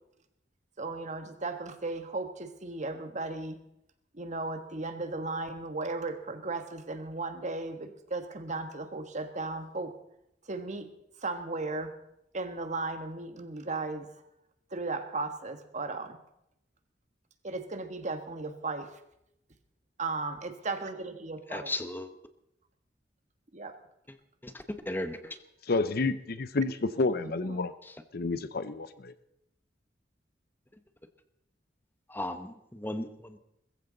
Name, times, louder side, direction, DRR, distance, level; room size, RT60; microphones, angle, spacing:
voice 1, 0.8-3.6 4.1-9.9 10.5-10.9 11.2-11.9 12.3-14.1 14.7-16.2 17.4-18.9 20.0-21.7 23.5-23.7 27.4-27.6, right 3 dB, 40° right, 8 dB, 1.5 m, -36 dB
voice 2, 21.5-22.1 24.4-25.4 27.8-27.9 32.1-33.4, left 1 dB, 10° left, 9 dB, 1.0 m, -36 dB
voice 3, 25.7-27.7 28.1-29.1, left 3 dB, 55° left, 13 dB, 0.7 m, -29 dB
21.0 x 14.5 x 4.0 m, 0.81 s
head